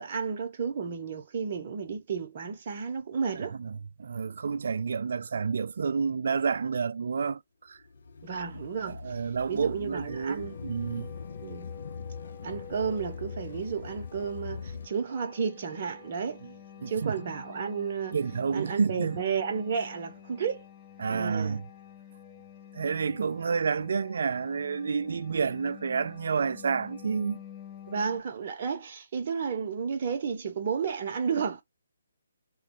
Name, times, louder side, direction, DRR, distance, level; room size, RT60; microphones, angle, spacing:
voice 1, 0.0-3.5 8.2-9.2 9.5-10.6 11.4-11.7 12.4-16.4 16.9-18.2 18.5-20.6 21.1-21.6 27.9-31.6, right 6 dB, 45° right, 0.7 m, -32 dB
voice 2, 3.4-7.8 8.9-11.1 16.8-17.2 18.1-19.2 21.0-21.6 22.7-27.4, right 5 dB, 60° right, 0.3 m, -30 dB
sound 1, 7.8-14.9, left 5 dB, 60° left, 0.6 m, -42 dB
sound 2, 10.1-28.2, left 8 dB, 15° left, 0.6 m, -49 dB
3.0 x 2.2 x 3.0 m
figure-of-eight pair, 145°, 0 cm